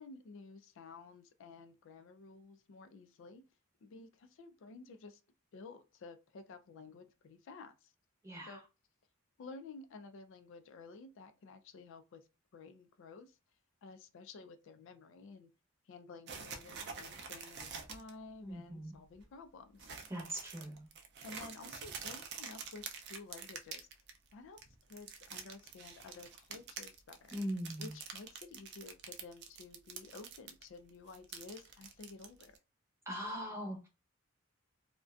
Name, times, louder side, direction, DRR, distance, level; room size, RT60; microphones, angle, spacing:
voice 1, 0.0-3.4 3.8-5.2 5.5-7.9 8.5-8.6 9.4-12.3 12.5-13.4 13.8-15.5 15.9-19.9 21.2-23.9 24.3-24.6 24.9-27.4 27.8-32.6, left 3 dB, 65° left, 0.4 m, -52 dB
voice 2, 8.2-8.6 18.4-19.0 20.1-20.9 27.3-27.9 33.1-33.9, equal, 15° right, 0.8 m, -41 dB
sound 1, 16.3-18.1 18.5-18.6 18.9-19.2 19.8-24.3 24.6-30.6 30.9-32.6, right 6 dB, 55° right, 0.4 m, -47 dB
2.5 x 2.1 x 2.3 m
head